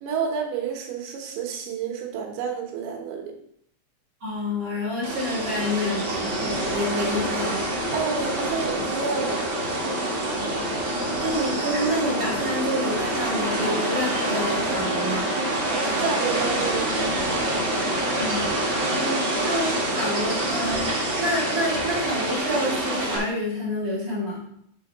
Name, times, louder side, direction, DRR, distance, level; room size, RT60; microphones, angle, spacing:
voice 1, 0.0-3.4 7.9-9.4 15.5-17.2, right 6 dB, 85° right, 2 dB, 3.4 m, -30 dB
voice 2, 4.2-7.7 10.3-10.7 11.1-15.3 18.1-18.5 18.9-24.5, left 1 dB, 40° right, -6 dB, 2.5 m, -28 dB
sound 1, 5.0-23.2, right 1 dB, 60° right, 1.2 m, -26 dB
7.3 x 3.6 x 6.0 m, 0.70 s
omnidirectional pair, 4.9 m